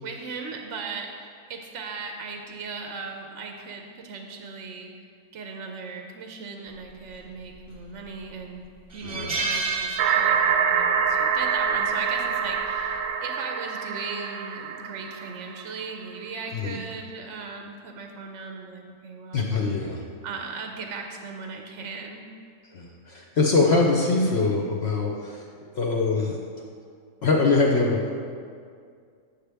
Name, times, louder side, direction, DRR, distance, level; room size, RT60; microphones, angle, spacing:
voice 1, 0.0-5.1 5.3-8.7 8.9-19.7 20.2-22.2, right 4 dB, 60° right, 3 dB, 0.8 m, -38 dB
sound 1, 7.5-8.0 8.4-8.5 8.9-10.7 11.0-11.2 12.5-12.8, right 4 dB, 30° right, 0.8 m, -30 dB
voice 2, 9.0-9.4 16.5-16.8 19.3-20.0 22.7-25.4 25.7-26.4 27.2-28.2, left 3 dB, 60° left, 0 dB, 0.7 m, -23 dB
sound 2, 10.0-15.7, right 7 dB, 75° right, 1.1 m, -25 dB
8.4 x 6.4 x 3.4 m, 2.2 s
omnidirectional pair, 1.6 m